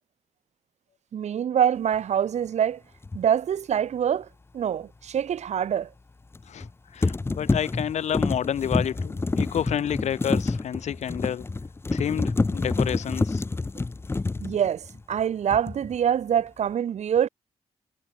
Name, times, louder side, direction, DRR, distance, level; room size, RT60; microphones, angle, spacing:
voice 1, 1.1-2.8 3.1-4.3 4.5-5.9 14.4-17.3, right 9 dB, 70° right, 5.4 m, -25 dB
sound 1, 3.0-3.2 6.3-6.7 7.0-15.2 15.5-16.0, left 3 dB, 20° left, 1.5 m, -28 dB
voice 2, 6.9-11.4 11.9-13.4, left 9 dB, 75° left, 1.7 m, -29 dB
wide cardioid pair, 145°, 12 cm